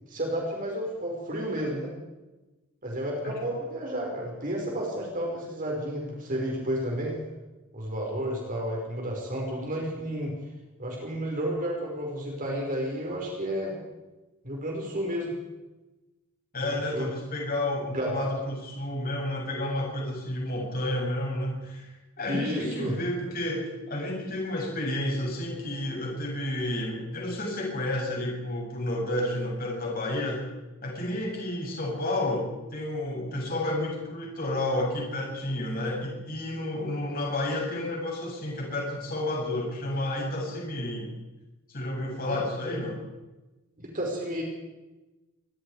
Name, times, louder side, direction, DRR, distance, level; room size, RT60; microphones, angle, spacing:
voice 1, 0.1-1.9 2.8-7.2 7.7-10.3 10.8-13.8 14.4-15.3 16.6-17.1 17.9-18.3 22.3-23.0 42.3-42.4 42.7-42.8 43.8-44.4, equal, 40° right, -1 dB, 5.3 m, -31 dB
voice 2, 16.5-30.4 30.8-41.1 41.7-43.0, left 1 dB, 45° left, -2 dB, 8.0 m, -31 dB
25.5 x 22.0 x 5.0 m, 1.1 s
head